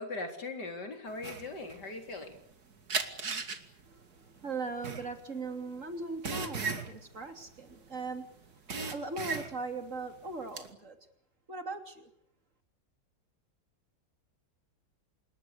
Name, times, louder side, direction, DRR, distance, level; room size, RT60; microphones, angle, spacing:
voice 1, 0.0-2.4, left 2 dB, 70° left, 6 dB, 4.3 m, -40 dB
sound 1, 1.2-2.5 2.9-8.2 8.4-9.8 10.2-10.7, right 4 dB, 60° right, 2.8 m, -36 dB
voice 2, 4.4-8.3 8.9-11.0 11.5-12.1, right 3 dB, 45° right, 7 dB, 3.4 m, -39 dB
27.0 x 21.5 x 8.2 m, 0.72 s
omnidirectional pair, 1.9 m